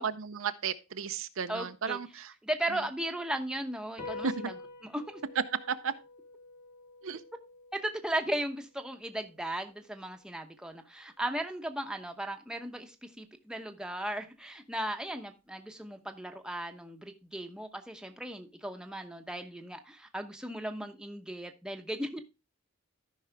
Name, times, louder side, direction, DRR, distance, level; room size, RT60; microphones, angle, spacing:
voice 1, 0.0-2.3 4.2-4.3 5.7-5.9 7.0-7.2, right 6 dB, 70° right, 0.6 m, -34 dB
voice 2, 1.5-2.0 2.4-4.6 4.8-5.2 7.7-22.2, right 1 dB, 5° right, 0.9 m, -36 dB
sound 1, 4.0-10.7, left 3 dB, 40° left, 1.9 m, -48 dB
13.5 x 5.6 x 3.4 m
head